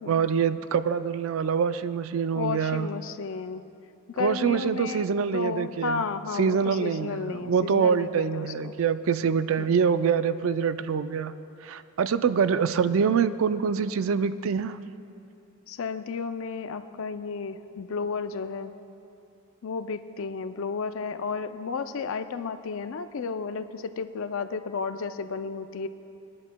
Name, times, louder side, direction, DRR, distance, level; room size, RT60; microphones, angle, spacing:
voice 1, 0.1-2.9 4.2-6.0 6.4-11.3 11.6-14.8, right 6 dB, 70° right, 12 dB, 0.4 m, -25 dB
voice 2, 2.3-3.6 4.1-8.7 9.6-9.7 15.7-18.7 19.6-25.9, left 5 dB, 65° left, 11 dB, 0.4 m, -33 dB
19.0 x 11.0 x 2.2 m, 2.7 s
head